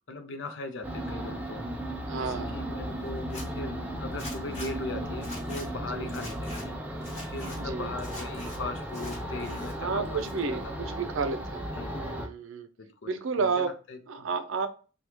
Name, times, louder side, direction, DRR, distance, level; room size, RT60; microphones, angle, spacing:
voice 1, 0.1-1.7 2.2-10.7 11.7-11.9 12.8-14.3, left 2 dB, 65° left, 0.6 m, -39 dB
sound 1, 0.8-12.3, equal, 10° right, 0.4 m, -35 dB
voice 2, 2.1-2.6 5.8-6.1 7.6-7.9 9.8-11.7 11.9-12.7 13.1-13.7 14.1-14.7, right 4 dB, 75° right, 0.5 m, -31 dB
Zipper (clothing), 3.2-3.4 4.2-4.7 5.2-5.7 6.1-6.6 7.0-7.6 8.0-8.6 8.9-9.7 10.0-10.7, left 2 dB, 30° left, 1.0 m, -44 dB
3.4 x 2.3 x 2.9 m
head